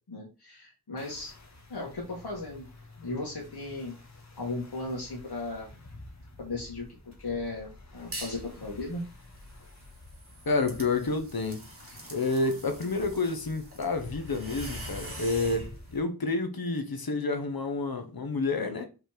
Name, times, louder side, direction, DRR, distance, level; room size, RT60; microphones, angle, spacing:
voice 1, 0.1-1.3 1.7-2.7 3.0-3.9 4.4-5.7 6.4-6.8 7.2-9.0, left 2 dB, 85° left, 1.9 m, -36 dB
sound 1, 1.0-16.0, left 2 dB, 45° left, 1.7 m, -48 dB
sound 2, 8.1-8.5 8.9-15.7, right 1 dB, 35° right, 2.7 m, -45 dB
voice 2, 10.4-11.6 12.1-18.8, left 3 dB, 65° left, 1.2 m, -29 dB
5.2 x 4.3 x 4.5 m
wide cardioid pair, 75°, 39 cm